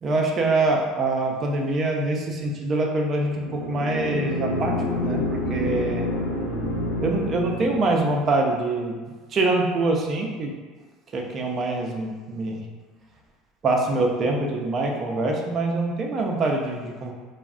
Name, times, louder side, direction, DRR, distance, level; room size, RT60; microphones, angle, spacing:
voice 1, 0.0-6.1 7.0-8.9 9.3-10.5 11.1-12.6 13.6-17.1, right 2 dB, 25° right, 0 dB, 0.3 m, -24 dB
sound 1, 3.2-8.2, left 2 dB, 55° left, 0.6 m, -28 dB
3.4 x 2.0 x 2.4 m, 1.3 s
cardioid pair, 165°, 0 cm